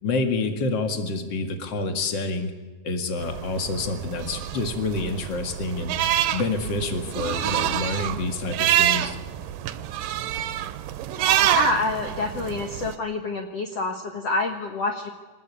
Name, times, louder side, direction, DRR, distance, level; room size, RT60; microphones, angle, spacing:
voice 1, 0.0-2.5 2.8-5.9 6.3-9.2, left 3 dB, 40° left, 6 dB, 1.9 m, -28 dB
sound 1, 3.2-12.9, right 12 dB, 75° right, 2.0 m, -27 dB
voice 2, 11.5-15.1, left 3 dB, 60° left, 4 dB, 1.7 m, -27 dB
25.5 x 20.0 x 8.5 m, 1.3 s
omnidirectional pair, 4.9 m